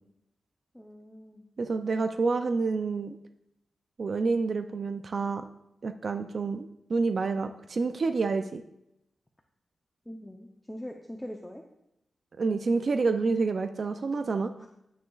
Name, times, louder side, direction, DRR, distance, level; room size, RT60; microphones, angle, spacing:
voice 1, 0.7-1.5 10.1-11.6 14.6-14.7, equal, 5° left, 2 dB, 0.6 m, -42 dB
voice 2, 1.6-3.2 4.0-5.5 5.8-8.6 12.4-14.5, right 4 dB, 45° right, 8 dB, 0.4 m, -28 dB
9.6 x 9.2 x 2.3 m, 0.84 s
wide cardioid pair, 150°, 0 cm